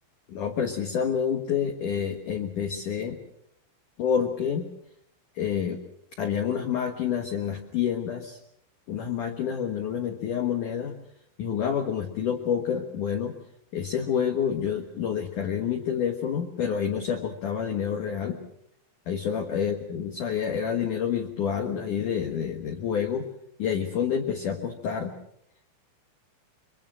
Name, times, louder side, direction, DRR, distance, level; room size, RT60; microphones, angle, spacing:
voice 1, 0.3-3.2 4.0-4.7 5.4-5.8 6.2-8.4 8.9-10.9 11.4-13.3 13.7-18.4 19.1-23.3 23.6-25.1, left 8 dB, 70° left, 4 dB, 2.0 m, -28 dB
25.5 x 23.0 x 6.3 m, 0.71 s
omnidirectional pair, 5.8 m